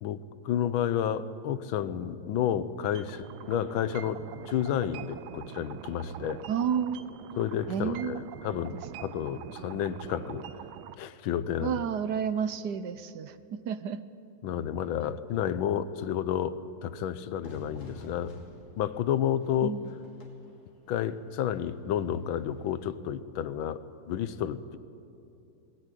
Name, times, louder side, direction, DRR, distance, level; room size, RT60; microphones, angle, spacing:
voice 1, 0.0-6.4 7.4-10.4 11.0-11.8 14.4-18.4 18.8-19.8 20.9-24.8, left 9 dB, 80° left, 14 dB, 1.5 m, -31 dB
sound 1, 2.9-10.9, right 11 dB, 85° right, 1.5 m, -44 dB
voice 2, 6.5-7.0 7.7-8.2 11.6-14.0 19.6-19.9, right 8 dB, 65° right, 12 dB, 1.2 m, -31 dB
Fire / Fireworks, 17.4-23.0, left 2 dB, 40° left, 2.5 m, -51 dB
20.5 x 17.0 x 9.2 m, 2.7 s
omnidirectional pair, 2.2 m